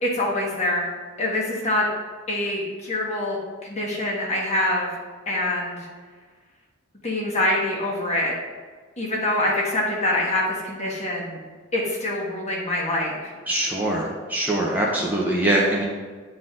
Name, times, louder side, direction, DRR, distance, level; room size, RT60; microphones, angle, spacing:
voice 1, 0.0-0.9 1.2-1.9 2.3-4.9 5.3-5.9 7.0-8.3 9.0-11.4 11.7-13.3, left 1 dB, 35° left, -3 dB, 1.4 m, -25 dB
voice 2, 13.5-15.8, right 1 dB, 10° right, -4 dB, 0.7 m, -23 dB
9.9 x 3.9 x 2.5 m, 1.5 s
head